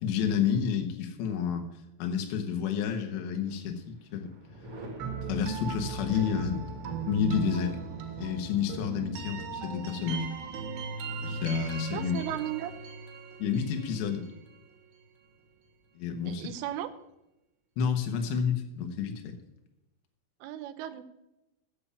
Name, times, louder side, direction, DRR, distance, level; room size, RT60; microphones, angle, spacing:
voice 1, 0.0-1.7 2.0-4.3 5.1-6.7 7.0-7.8 8.2-10.3 11.2-12.2 13.4-14.3 16.0-16.5 17.8-19.3, left 7 dB, 75° left, 4 dB, 3.3 m, -30 dB
Thunder, 2.8-3.6 4.0-13.5 15.0-15.9, equal, 45° right, 1.9 m, -46 dB
sound 1, 5.0-14.8, right 5 dB, 70° right, 3.4 m, -38 dB
voice 2, 11.9-12.7 16.3-16.9 20.4-21.0, right 12 dB, 85° right, 10 dB, 3.3 m, -35 dB
8.6 x 7.9 x 8.3 m, 0.91 s
omnidirectional pair, 5.6 m